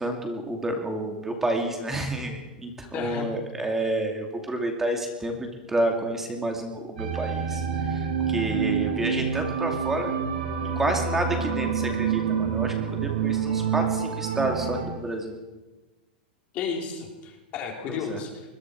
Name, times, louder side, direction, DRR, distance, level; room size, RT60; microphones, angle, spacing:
voice 1, 0.0-7.6 7.9-8.0 8.3-10.1 10.8-12.7 13.0-15.4 17.9-18.2, right 1 dB, 5° right, 3 dB, 2.5 m, -29 dB
voice 2, 2.9-3.3 16.5-18.5, left 6 dB, 25° left, 1 dB, 3.8 m, -33 dB
sound 1, 7.0-14.8, right 7 dB, 65° right, 7.9 m, -27 dB
25.0 x 22.0 x 4.8 m, 1.1 s
supercardioid pair, 170°, 5 cm